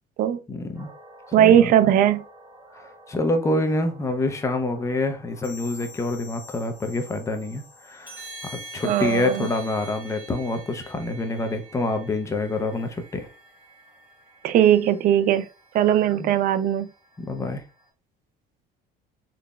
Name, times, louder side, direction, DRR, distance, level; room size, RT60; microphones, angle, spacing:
voice 1, 0.5-0.9 1.4-1.7 2.7-13.3 16.2-16.3 17.2-17.6, left 2 dB, 15° left, 0.6 m, -27 dB
sound 1, 0.8-17.9, right 1 dB, 10° right, 2.1 m, -46 dB
voice 2, 1.3-2.2 8.8-9.5 14.4-15.5 15.7-16.9, right 10 dB, 50° right, 0.4 m, -19 dB
3.9 x 3.3 x 2.3 m
cardioid pair, 140°, 19 cm